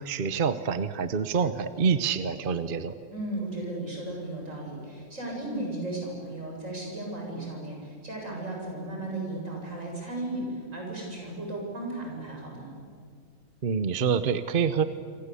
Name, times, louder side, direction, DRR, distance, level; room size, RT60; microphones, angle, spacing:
voice 1, 0.0-3.0 13.6-14.8, right 6 dB, 45° right, 11 dB, 1.0 m, -26 dB
voice 2, 3.1-12.8, right 2 dB, 85° right, -1 dB, 7.9 m, -35 dB
26.5 x 26.5 x 8.4 m, 2.2 s
omnidirectional pair, 1.3 m